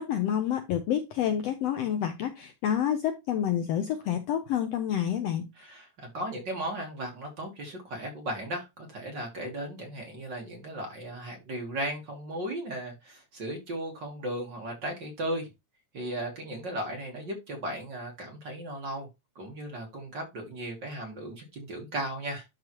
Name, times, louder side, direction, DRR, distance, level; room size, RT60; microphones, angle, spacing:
voice 1, 0.0-5.4, left 10 dB, 75° left, 1.5 m, -28 dB
voice 2, 5.5-15.5 15.9-19.1 19.3-22.4, right 1 dB, 45° right, 1.7 m, -36 dB
12.0 x 4.0 x 2.9 m
omnidirectional pair, 3.6 m